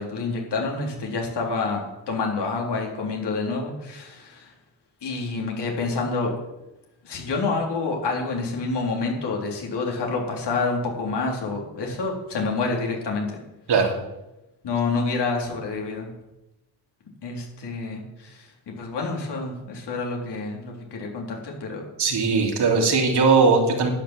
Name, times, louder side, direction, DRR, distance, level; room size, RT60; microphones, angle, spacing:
voice 1, 0.0-4.5 5.0-6.3 7.0-13.4 14.6-16.1 17.2-21.9, left 3 dB, 70° left, 0 dB, 3.9 m, -28 dB
voice 2, 22.0-23.9, right 4 dB, 65° right, 1 dB, 3.4 m, -19 dB
11.5 x 9.4 x 7.6 m, 0.96 s
cardioid pair, 95°, 43 cm